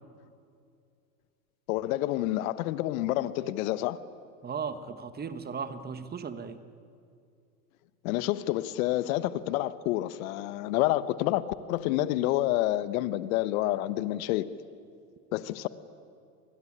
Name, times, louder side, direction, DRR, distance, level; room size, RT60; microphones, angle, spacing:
voice 1, 1.7-4.0 8.0-14.5 15.3-15.7, left 15 dB, 65° left, 1.2 m, -28 dB
voice 2, 4.4-6.6, right 6 dB, 20° right, 1.5 m, -36 dB
27.0 x 20.5 x 9.9 m
hypercardioid pair, 110°, 45 cm